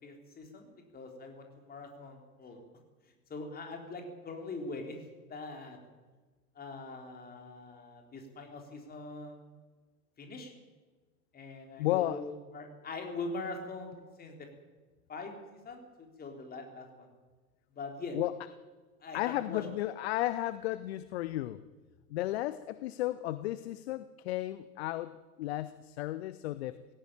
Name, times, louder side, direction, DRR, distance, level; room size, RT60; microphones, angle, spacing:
voice 1, 0.0-2.6 3.3-5.8 6.5-9.5 10.2-10.5 11.3-14.5 15.1-17.1 17.7-18.2 19.0-19.7, left 3 dB, 20° left, 3 dB, 4.0 m, -43 dB
voice 2, 11.8-12.2 18.1-18.3 19.1-21.6 22.1-26.8, left 15 dB, 40° left, 15 dB, 0.8 m, -34 dB
17.0 x 17.0 x 9.1 m, 1.3 s
figure-of-eight pair, 95°, 48 cm